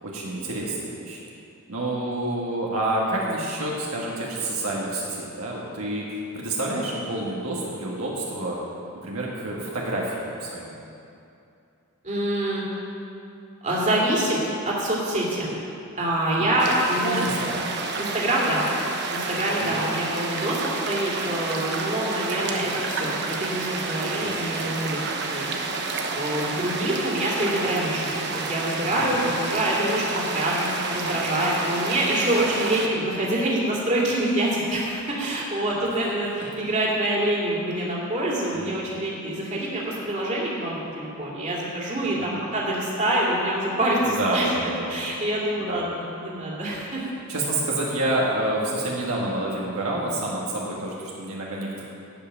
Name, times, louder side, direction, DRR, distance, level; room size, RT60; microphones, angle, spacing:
voice 1, 0.0-1.2 1.7-8.6 9.0-10.8 16.4-16.5 17.0-17.7 19.6-19.8 24.2-24.5 28.9-29.1 32.4-32.5 38.5-38.8 42.2-42.4 44.0-45.0 45.6-45.8 47.3-51.8, right 1 dB, 75° right, -4 dB, 1.6 m, -28 dB
voice 2, 12.0-12.6 13.6-14.4 14.7-15.5 15.9-17.4 18.0-18.6 19.1-20.6 20.9-25.0 25.3-25.5 26.1-44.5 44.9-47.0, right 1 dB, 35° right, -5 dB, 2.5 m, -26 dB
sound 1, 16.6-32.9, right 3 dB, 50° right, 1.0 m, -30 dB
12.0 x 5.7 x 8.8 m, 2.6 s
head